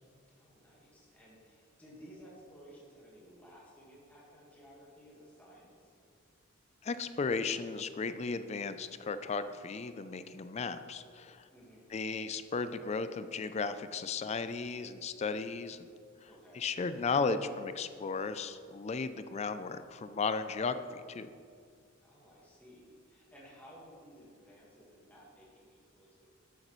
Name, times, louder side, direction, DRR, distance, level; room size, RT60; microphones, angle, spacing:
voice 1, 0.3-5.9 11.5-11.9 16.3-16.7 22.0-26.3, equal, 10° left, -6 dB, 1.6 m, -56 dB
voice 2, 6.8-11.5 11.9-15.9 16.5-21.3, left 4 dB, 30° left, 12 dB, 0.3 m, -35 dB
12.0 x 8.0 x 3.1 m, 2.2 s
head